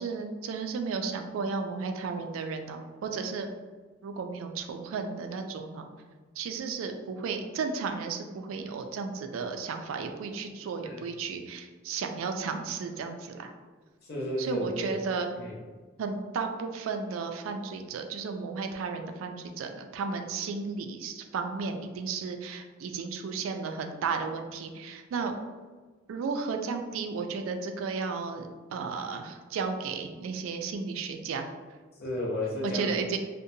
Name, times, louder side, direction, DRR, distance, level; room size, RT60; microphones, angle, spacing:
voice 1, 0.0-3.5 4.0-5.9 6.4-13.5 14.4-15.3 16.0-25.3 26.1-31.5 32.6-33.2, right 5 dB, 85° right, 5 dB, 0.3 m, -34 dB
voice 2, 14.0-15.0 15.3-15.6 32.0-32.9, left 1 dB, 50° left, -3 dB, 0.6 m, -33 dB
2.6 x 2.1 x 2.7 m, 1.4 s
head